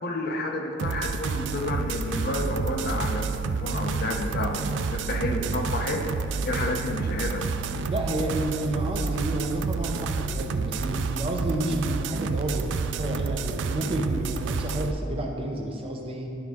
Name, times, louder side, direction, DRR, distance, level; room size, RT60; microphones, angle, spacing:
voice 1, 0.0-6.1 6.4-7.5, left 2 dB, 55° left, 2 dB, 0.7 m, -30 dB
sound 1, 0.8-14.9, right 4 dB, 75° right, 0.3 m, -29 dB
voice 2, 7.9-16.3, right 1 dB, 30° right, 1 dB, 0.7 m, -31 dB
11.5 x 4.7 x 3.6 m, 2.7 s
head